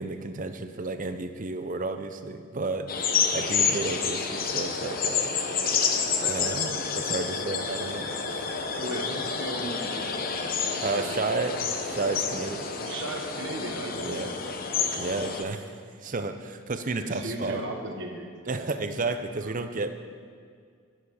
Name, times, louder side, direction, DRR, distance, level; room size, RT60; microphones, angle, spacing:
voice 1, 0.0-2.9 3.3-5.4 6.2-8.5 10.8-12.6 14.0-14.3 15.0-15.7 16.0-17.6 18.5-19.9, right 3 dB, 40° right, 9 dB, 0.6 m, -32 dB
sound 1, 2.9-15.4, left 5 dB, 40° left, 0.9 m, -29 dB
voice 2, 8.7-10.2 10.5-11.2 12.7-14.6 16.9-18.7 19.0-19.1 19.4-19.5, right 1 dB, 55° right, 2 dB, 1.4 m, -37 dB
11.5 x 11.0 x 5.0 m, 2.1 s
head